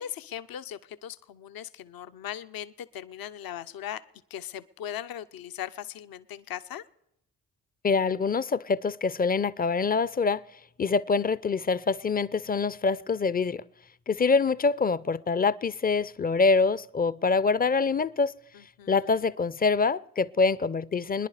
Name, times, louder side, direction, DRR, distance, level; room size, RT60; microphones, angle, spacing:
voice 1, 0.0-4.0 4.3-6.8 18.5-19.1, left 10 dB, 55° left, 0.8 m, -39 dB
voice 2, 7.8-10.4 10.8-13.6 14.1-18.4 18.9-21.3, left 4 dB, 20° left, 0.5 m, -25 dB
23.0 x 10.5 x 4.9 m
hypercardioid pair, 45°, 41 cm